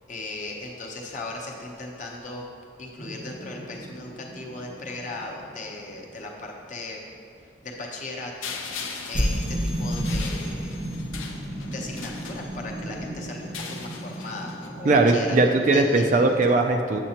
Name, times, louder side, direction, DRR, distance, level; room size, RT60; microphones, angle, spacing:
voice 1, 0.1-2.4 2.8-7.0 7.4-8.5 9.1-10.8 11.7-15.4 15.7-16.4, left 2 dB, 40° left, -1 dB, 0.8 m, -37 dB
sound 1, 3.0-6.0 9.1-16.4, equal, 25° right, 0.7 m, -33 dB
sound 2, 8.4-12.9 13.4-14.7, left 5 dB, 90° left, 0.6 m, -39 dB
voice 2, 14.9-17.0, right 2 dB, 40° right, 5 dB, 0.3 m, -19 dB
7.6 x 7.4 x 2.9 m, 2.4 s
head